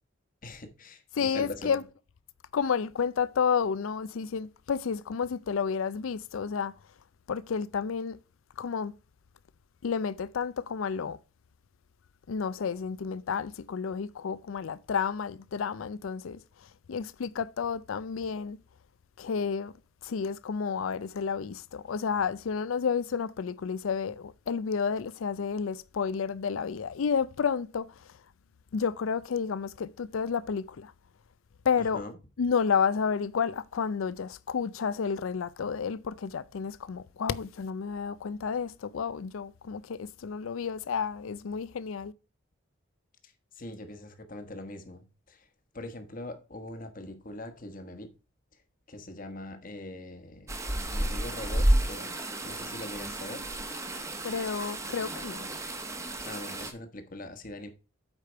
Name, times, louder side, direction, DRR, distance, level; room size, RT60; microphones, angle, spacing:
voice 1, 0.4-1.8 31.8-32.1 43.2-45.5 45.7-48.1 48.9-50.5 50.9-53.4 56.2-57.7, left 1 dB, 40° left, 1.1 m, -42 dB
voice 2, 1.1-1.8 2.5-6.7 7.3-8.2 8.6-8.9 9.8-11.2 12.3-16.4 16.9-18.6 19.2-19.7 20.0-27.9 28.7-30.9 31.6-32.0 32.4-42.1 54.2-55.5, left 6 dB, 80° left, 0.4 m, -31 dB
sound 1, 50.5-56.7, right 1 dB, 15° right, 1.0 m, -31 dB
8.2 x 5.0 x 4.4 m
head